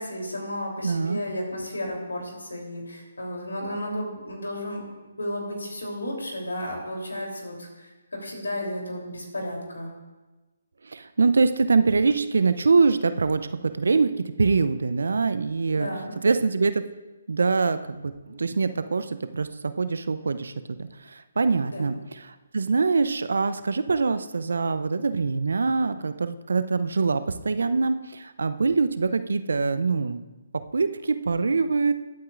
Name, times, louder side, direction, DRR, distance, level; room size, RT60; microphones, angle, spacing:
voice 1, 0.0-9.9 15.7-16.1 21.7-21.8, left 1 dB, 80° left, 0 dB, 3.3 m, -33 dB
voice 2, 0.8-1.2 10.9-15.9 16.2-16.8 17.3-20.5 20.8-22.0 22.5-30.2 30.5-31.9, right 4 dB, 70° right, 11 dB, 0.6 m, -24 dB
20.5 x 8.6 x 2.5 m, 1.2 s
figure-of-eight pair, 140°, 0 cm